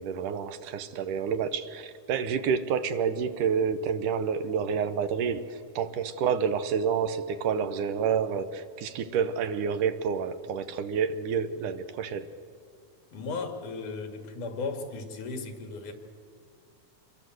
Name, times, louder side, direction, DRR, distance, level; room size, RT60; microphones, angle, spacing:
voice 1, 0.0-12.3, right 6 dB, 85° right, 2.6 m, -29 dB
voice 2, 13.1-15.9, left 4 dB, 75° left, 3.7 m, -36 dB
27.0 x 22.0 x 7.8 m
omnidirectional pair, 3.6 m